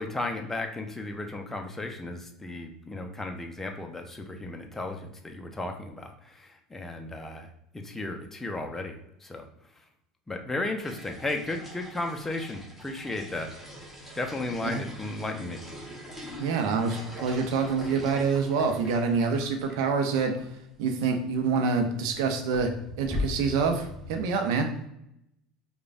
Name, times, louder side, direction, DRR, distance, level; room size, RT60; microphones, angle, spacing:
voice 1, 0.0-7.5 7.7-9.0 9.2-9.5 10.3-13.5 14.1-15.6, left 2 dB, 15° left, 4 dB, 0.6 m, -34 dB
sound 1, 10.8-19.8 20.1-20.2 20.4-20.5 21.5-21.7 22.1-24.2, left 1 dB, 5° right, 1.1 m, -41 dB
voice 2, 16.4-20.3 20.8-22.7 23.0-24.7, right 5 dB, 65° right, 5 dB, 0.6 m, -26 dB
4.9 x 2.3 x 2.5 m, 0.79 s
figure-of-eight pair, 70°, 3 cm